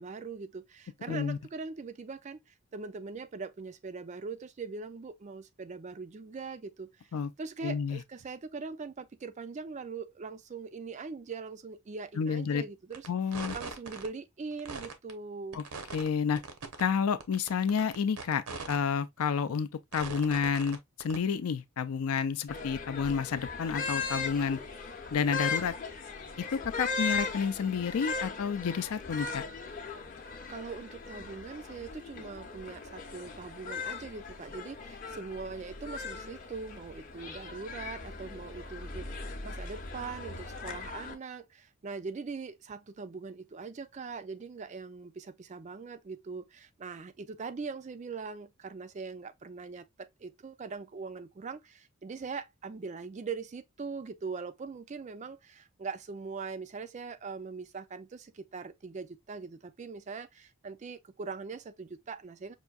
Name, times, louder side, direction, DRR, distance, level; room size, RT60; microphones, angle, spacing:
voice 1, 0.0-7.1 7.4-15.6 30.5-62.5, right 4 dB, 30° right, 0.3 m, -41 dB
voice 2, 1.1-1.4 7.1-7.3 7.6-8.0 12.2-12.6 13.1-13.6 15.5-15.6 15.9-16.4 16.8-24.6 25.1-25.8 26.4-29.4, left 6 dB, 75° left, 0.4 m, -30 dB
sound 1, 12.9-13.1 13.3-14.1 14.5-15.1 15.5-16.1 16.4-16.8 17.2-18.8 19.2-19.3 19.9-20.8 21.0-21.2, right 4 dB, 90° right, 0.8 m, -40 dB
sound 2, 22.5-41.1, left 4 dB, 35° left, 0.7 m, -38 dB
5.7 x 2.6 x 2.3 m
head